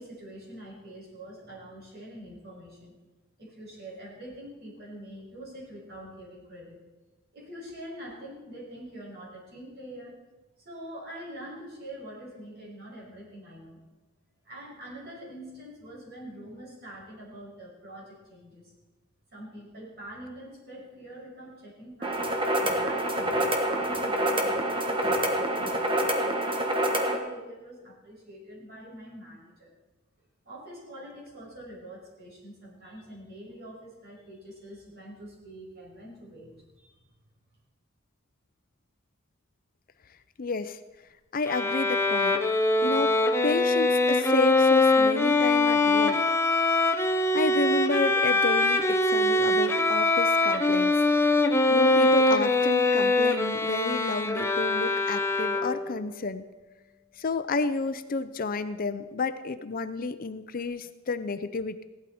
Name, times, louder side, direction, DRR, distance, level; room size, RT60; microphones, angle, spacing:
voice 1, 0.0-2.9 3.4-6.8 7.3-10.2 10.6-13.8 14.4-18.7 19.3-29.7 30.4-37.0, right 1 dB, 50° right, -5 dB, 5.9 m, -44 dB
sound 1, 22.0-27.2, right 1 dB, 25° right, 1.4 m, -27 dB
voice 2, 40.4-40.8 41.3-42.4 42.8-43.2 43.4-46.4 47.3-50.9 51.7-56.4 57.2-61.8, left 3 dB, 45° left, 11 dB, 0.6 m, -31 dB
Bowed string instrument, 41.5-56.0, left 2 dB, 15° left, 0.8 m, -23 dB
16.0 x 12.0 x 4.2 m, 1.1 s
head